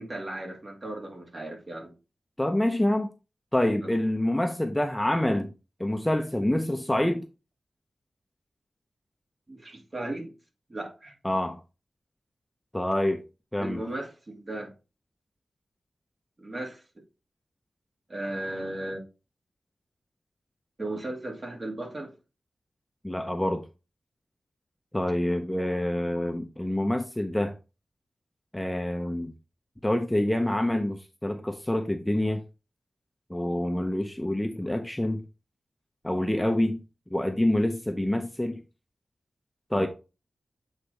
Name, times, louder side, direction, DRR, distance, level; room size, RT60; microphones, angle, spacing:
voice 1, 0.0-1.9 3.8-3.9 9.5-10.3 10.7-11.1 13.6-14.7 16.4-16.8 18.1-19.0 20.8-22.1 39.7-39.9, right 1 dB, 40° right, 2.1 m, -36 dB
voice 2, 2.4-3.1 3.5-5.5 5.8-7.2 11.2-11.6 12.7-13.2 13.5-13.8 23.0-23.6 24.9-27.5 28.5-29.3 29.8-32.4 33.3-35.2 36.0-36.8 37.1-38.6 39.7-39.9, left 1 dB, 10° left, 0.7 m, -26 dB
7.9 x 4.0 x 3.3 m
wide cardioid pair, 90°, 0 cm